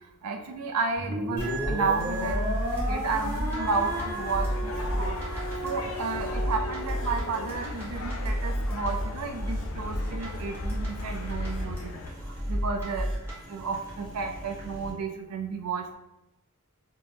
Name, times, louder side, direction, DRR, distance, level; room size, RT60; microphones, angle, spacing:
voice 1, 0.2-2.6 2.9-13.2 13.5-16.0, right 4 dB, 75° right, 5 dB, 0.4 m, -32 dB
sound 1, 1.0-7.4, equal, 20° left, 1.3 m, -34 dB
sound 2, 1.4-14.9, equal, 10° right, 0.9 m, -33 dB
sound 3, 3.6-12.1, left 3 dB, 60° left, 0.3 m, -38 dB
3.3 x 2.2 x 2.7 m, 0.92 s
head